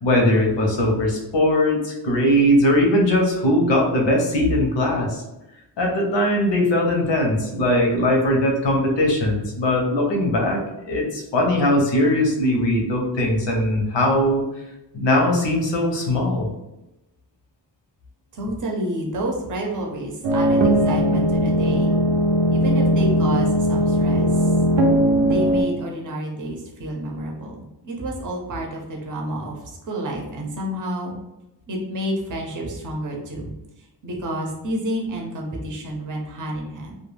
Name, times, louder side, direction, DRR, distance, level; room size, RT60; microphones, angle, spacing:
voice 1, 0.0-5.2 5.8-14.4 14.9-16.5, left 1 dB, 80° left, 0 dB, 0.7 m, -20 dB
voice 2, 18.3-22.0 22.5-24.5 25.2-31.1 31.7-33.5 33.8-37.0, right 1 dB, 45° right, 0 dB, 0.6 m, -29 dB
sound 1, 20.2-25.6, equal, 90° right, 0.6 m, -19 dB
2.2 x 2.2 x 3.2 m, 0.94 s
wide cardioid pair, 125°, 43 cm